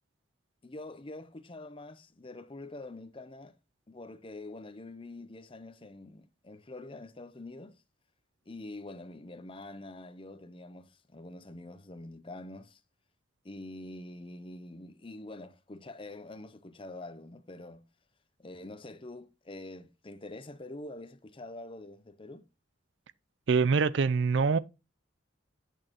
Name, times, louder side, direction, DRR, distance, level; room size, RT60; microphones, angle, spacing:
voice 1, 0.6-3.5 3.9-7.8 8.5-12.8 13.4-17.8 18.4-22.4, left 2 dB, 25° left, 0.6 m, -45 dB
voice 2, 23.5-24.6, right 5 dB, 65° right, 0.4 m, -24 dB
8.7 x 6.4 x 2.9 m
head